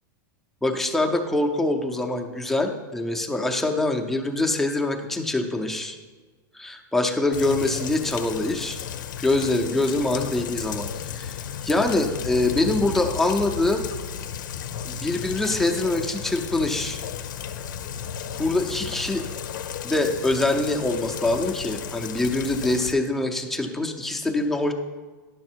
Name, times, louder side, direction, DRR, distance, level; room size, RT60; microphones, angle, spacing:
voice 1, 0.6-6.0 6.5-8.8 9.2-11.4 11.6-13.8 14.8-17.0 18.4-19.3 19.8-24.7, left 2 dB, ahead, 2 dB, 0.6 m, -24 dB
Rain, 7.3-22.9, left 8 dB, 85° left, 0.6 m, -34 dB
10.5 x 6.4 x 4.5 m, 1.4 s
supercardioid pair, 150°, 10 cm